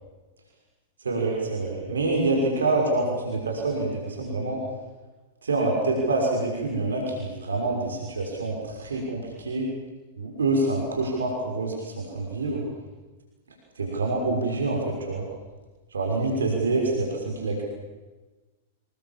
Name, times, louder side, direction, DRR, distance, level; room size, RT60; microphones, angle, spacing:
voice 1, 1.0-4.6 5.4-9.7 10.2-12.6 13.8-15.3 15.9-17.6, right 2 dB, 85° right, 0 dB, 6.1 m, -26 dB
27.0 x 22.0 x 7.5 m, 1.2 s
hypercardioid pair, 110°, 0 cm